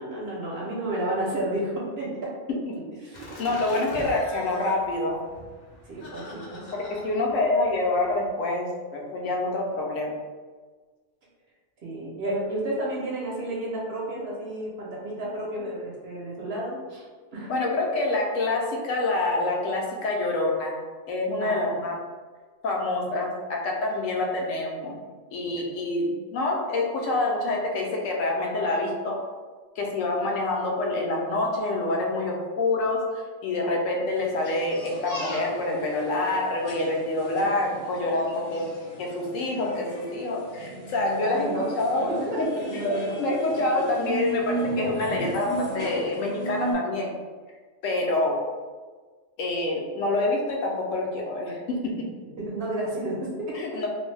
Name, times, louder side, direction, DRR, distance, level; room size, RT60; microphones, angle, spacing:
voice 1, 0.0-2.3 3.0-3.5 5.8-6.7 11.8-17.0 17.3-17.5 21.4-21.8 25.4-25.5 41.2-41.7 42.1-43.1 52.4-53.5, right 1 dB, 60° right, -4 dB, 0.8 m, -31 dB
Laughter, 3.1-8.3, left 1 dB, 55° left, 0.8 m, -44 dB
voice 2, 3.4-5.2 7.0-10.2 17.5-20.8 21.1-22.0 22.6-25.0 25.3-29.2 29.8-38.7 39.0-41.5 41.8-42.5 42.7-47.1 47.8-48.4 49.4-52.1 53.5-53.9, left 2 dB, 80° left, 0 dB, 0.9 m, -26 dB
sound 1, 34.1-46.7, right 1 dB, 20° left, 0.5 m, -36 dB
2.6 x 2.2 x 3.1 m, 1.4 s
omnidirectional pair, 1.4 m